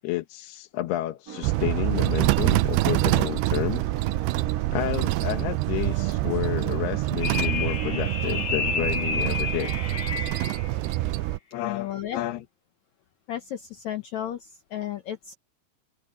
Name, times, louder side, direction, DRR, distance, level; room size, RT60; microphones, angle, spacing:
voice 1, 0.0-3.8 4.7-9.7 11.5-12.4, left 15 dB, 90° left, 3.2 m, -30 dB
sound 1, 1.3-11.4, right 8 dB, 45° right, 3.5 m, -41 dB
sound 2, 1.4-11.4, right 19 dB, 90° right, 2.6 m, -26 dB
sound 3, 7.2-10.7, left 5 dB, 40° left, 4.3 m, -30 dB
voice 2, 11.6-12.2 13.3-15.4, left 11 dB, 70° left, 1.8 m, -33 dB
open air
omnidirectional pair, 4.5 m